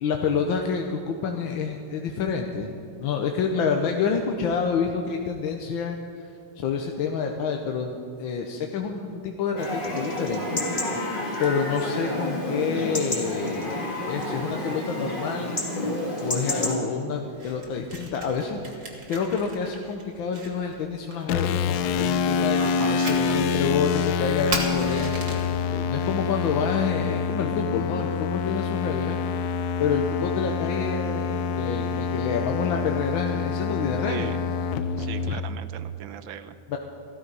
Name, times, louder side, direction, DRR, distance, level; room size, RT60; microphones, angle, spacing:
voice 1, 0.0-2.7 3.0-6.0 6.6-10.6 11.4-15.6 16.2-29.2 29.8-34.3 36.7-36.8, left 5 dB, 70° left, 3 dB, 1.6 m, -28 dB
Chatter / Livestock farm animals working animals / Chirp tweet, 9.6-16.8, left 1 dB, 25° left, 2.0 m, -30 dB
Fire, 17.2-25.6, right 2 dB, 40° right, 2.0 m, -38 dB
sound 1, 21.3-35.4, left 6 dB, 85° left, 0.8 m, -26 dB
voice 2, 22.6-23.7 34.0-34.5 35.0-36.6, right 9 dB, 75° right, 12 dB, 1.4 m, -38 dB
14.5 x 13.5 x 5.5 m, 2.6 s
omnidirectional pair, 2.4 m